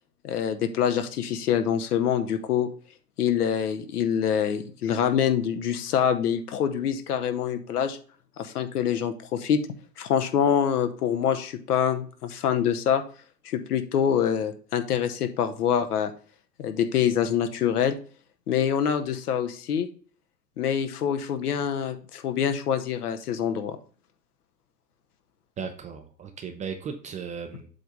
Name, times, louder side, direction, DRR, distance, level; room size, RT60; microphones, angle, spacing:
voice 1, 0.2-2.7 3.2-8.0 8.4-9.6 10.0-13.0 13.4-16.1 16.6-17.9 18.5-19.9 20.6-23.8, left 8 dB, 65° left, 8 dB, 1.0 m, -25 dB
voice 2, 25.6-27.7, right 6 dB, 15° right, 6 dB, 0.5 m, -36 dB
7.7 x 3.5 x 5.2 m, 0.43 s
figure-of-eight pair, 85°, 50 cm